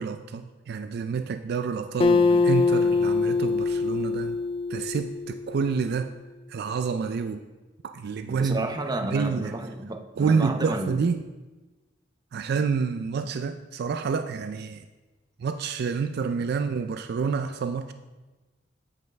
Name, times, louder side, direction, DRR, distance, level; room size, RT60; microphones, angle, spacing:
voice 1, 0.0-4.4 4.7-6.1 6.5-7.4 7.8-8.7 9.1-9.5 10.2-11.2 12.3-14.8 15.4-17.9, right 5 dB, 55° right, 9 dB, 0.3 m, -28 dB
Acoustic guitar, 2.0-5.6, left 4 dB, 30° left, 0.4 m, -23 dB
voice 2, 8.3-11.0, right 2 dB, 20° right, 5 dB, 0.6 m, -31 dB
8.0 x 5.4 x 5.2 m, 1.2 s
head